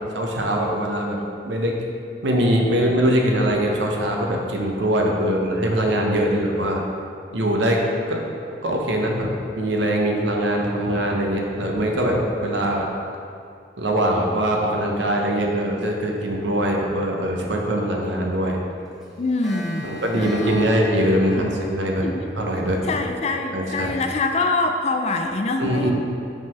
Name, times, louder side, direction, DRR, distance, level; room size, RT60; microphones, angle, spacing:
voice 1, 0.1-1.8 2.2-6.8 7.3-7.8 8.1-8.2 8.6-12.9 13.8-18.6 19.8-22.0 22.4-22.9 23.5-23.9 25.6-25.9, right 1 dB, 80° right, 0 dB, 0.8 m, -22 dB
Clock, 17.5-17.6 17.9-18.1 18.4-18.5 18.8-22.8, left 1 dB, ahead, 1.2 m, -40 dB
voice 2, 19.2-20.8 21.4-21.5 22.0-22.2 22.8-25.9, left 3 dB, 35° left, 5 dB, 0.4 m, -25 dB
5.1 x 3.8 x 5.6 m, 2.4 s
head